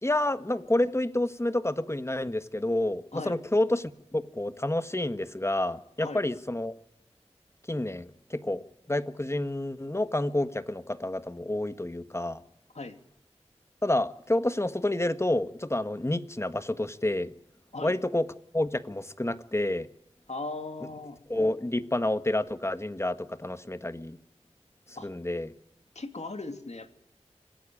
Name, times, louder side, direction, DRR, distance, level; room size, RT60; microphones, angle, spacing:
voice 1, 0.0-6.7 7.7-12.4 13.8-17.3 17.8-18.3 18.5-19.9 21.3-24.2 24.9-25.5, left 1 dB, 25° left, 11 dB, 1.5 m, -29 dB
voice 2, 20.3-21.2 25.0-25.1 25.9-26.9, left 3 dB, 75° left, 7 dB, 2.7 m, -38 dB
26.0 x 18.5 x 8.6 m, 0.79 s
wide cardioid pair, 60°, 12 cm